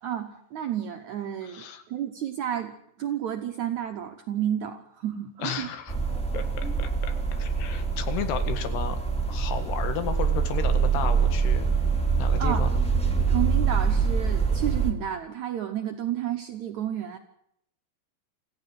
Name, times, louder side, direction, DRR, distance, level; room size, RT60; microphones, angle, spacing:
voice 1, 0.0-5.7 12.4-12.7 13.3-17.2, right 10 dB, 70° right, 4 dB, 1.8 m, -31 dB
voice 2, 1.4-1.8 5.4-6.0 6.3-9.0 9.3-11.7 12.2-12.8, left 8 dB, 80° left, 9 dB, 3.9 m, -33 dB
sound 1, 5.9-14.9, right 5 dB, ahead, 1.7 m, -25 dB
26.5 x 15.0 x 7.8 m, 0.76 s
omnidirectional pair, 4.7 m